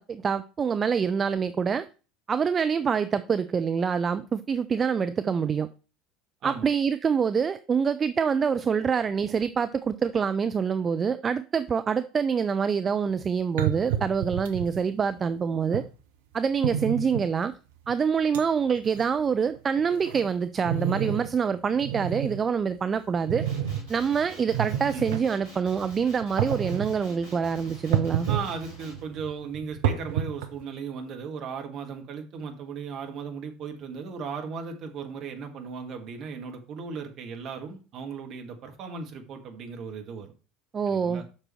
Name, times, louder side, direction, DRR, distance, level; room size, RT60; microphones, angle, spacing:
voice 1, 0.0-1.8 2.3-5.7 6.4-15.8 16.3-17.5 17.9-23.4 23.9-28.3 40.7-41.2, right 6 dB, 30° right, 11 dB, 0.5 m, -26 dB
sound 1, 13.1-13.2 13.6-14.8 15.7-15.8 16.6-17.3 17.9-18.0 18.3-18.5 18.8-19.0 19.5-21.3 21.7-22.4 23.2-23.8 24.4-25.2 26.2-26.9 27.9-28.5 28.8-30.6, right 9 dB, 65° right, 1.0 m, -29 dB
Male speech man speaking, 23.4-29.0, right 2 dB, 80° right, 4.4 m, -46 dB
voice 2, 28.3-40.3 40.9-41.2, right 5 dB, 45° right, 4 dB, 1.7 m, -36 dB
7.7 x 6.1 x 4.4 m, 0.35 s
figure-of-eight pair, 65°, 0 cm